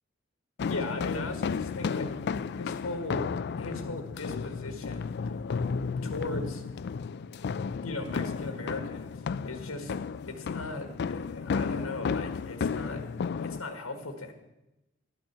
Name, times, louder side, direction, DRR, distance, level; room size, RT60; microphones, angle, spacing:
sound 1, 0.6-13.6, left 5 dB, 55° left, 0.3 m, -33 dB
voice 1, 0.7-2.1 2.6-3.3 3.6-5.3 6.0-6.6 7.8-9.9 10.3-13.0 13.4-14.3, left 2 dB, 80° left, 6 dB, 1.5 m, -38 dB
12.0 x 8.8 x 6.8 m, 0.94 s
head